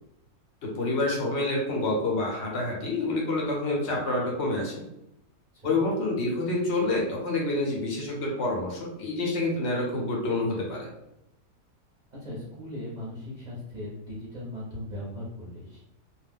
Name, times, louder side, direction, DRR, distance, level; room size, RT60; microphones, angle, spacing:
voice 1, 0.6-4.8 5.6-10.9, left 2 dB, 60° left, -1 dB, 0.8 m, -28 dB
voice 2, 12.1-15.8, left 1 dB, 40° right, -7 dB, 0.6 m, -38 dB
2.4 x 2.2 x 3.4 m, 0.87 s
omnidirectional pair, 1.7 m